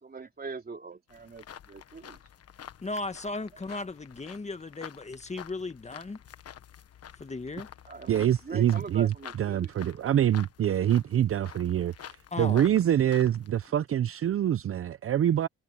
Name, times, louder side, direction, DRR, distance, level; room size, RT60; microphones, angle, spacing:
voice 1, 0.0-2.2 7.8-10.2, right 4 dB, 30° right, 3.5 m, -42 dB
sound 1, 1.1-13.7, left 9 dB, 55° left, 1.3 m, -49 dB
voice 2, 2.8-6.2 7.2-7.7 12.3-12.7, left 3 dB, 20° left, 1.7 m, -36 dB
voice 3, 8.1-15.5, right 10 dB, 45° right, 0.7 m, -25 dB
cardioid pair, 90°, 30 cm